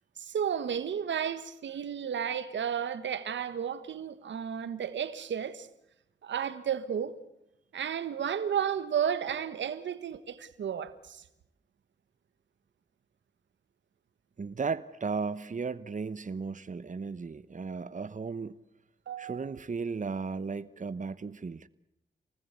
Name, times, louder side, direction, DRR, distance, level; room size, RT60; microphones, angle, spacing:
voice 1, 0.2-5.7 6.2-7.1 7.7-11.2 19.1-19.5, right 8 dB, 85° right, 1.4 m, -33 dB
voice 2, 14.4-18.6 19.2-21.7, right 5 dB, 45° right, 1.0 m, -35 dB
28.0 x 19.5 x 8.3 m
cardioid pair, 45°, 18 cm